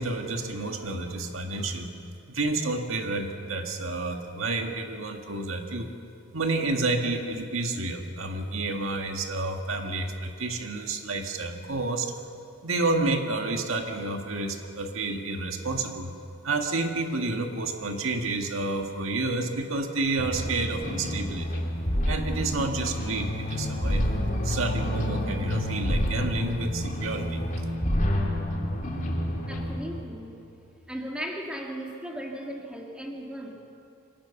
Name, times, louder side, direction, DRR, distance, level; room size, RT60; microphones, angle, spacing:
voice 1, 0.0-1.9 2.3-5.9 6.3-12.1 12.6-16.1 16.4-21.6 22.0-24.2 24.4-27.4, right 2 dB, 80° right, 4 dB, 1.8 m, -30 dB
sound 1, 20.2-29.8, left 1 dB, 40° left, 3.5 m, -28 dB
voice 2, 29.5-30.3 30.9-33.5, equal, 5° right, -1 dB, 2.2 m, -36 dB
25.0 x 18.5 x 7.1 m, 2.6 s
head